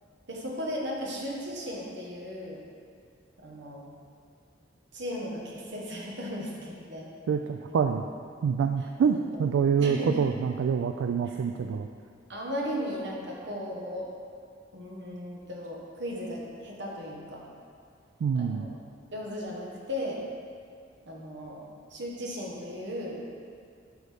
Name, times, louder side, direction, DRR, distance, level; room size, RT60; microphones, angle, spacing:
voice 1, 0.3-2.6 3.4-3.9 4.9-7.1 8.8-8.9 9.1-9.4 9.8-10.3 11.3-11.4 12.3-14.1 14.7-17.4 18.3-18.7 19.1-20.2 21.1-21.6 21.9-23.4, equal, 60° right, -3 dB, 1.3 m, -36 dB
voice 2, 7.3-8.0 8.4-11.9 18.2-18.7, right 6 dB, 80° right, 5 dB, 0.3 m, -26 dB
8.0 x 6.2 x 3.5 m, 2.3 s
head